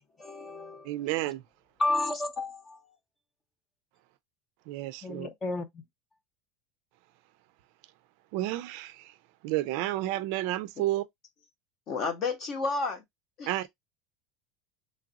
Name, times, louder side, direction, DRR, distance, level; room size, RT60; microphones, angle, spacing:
voice 1, 0.2-0.9 1.8-2.8 5.0-5.7, left 2 dB, 20° left, 0.6 m, -31 dB
voice 2, 0.8-1.4 4.7-5.3 8.3-9.1 9.4-11.0 13.5-13.7, right 16 dB, 60° right, 0.4 m, -31 dB
voice 3, 11.9-13.0 13.4-13.5, left 4 dB, 35° left, 1.0 m, -30 dB
3.2 x 2.4 x 3.9 m
supercardioid pair, 160°, 0 cm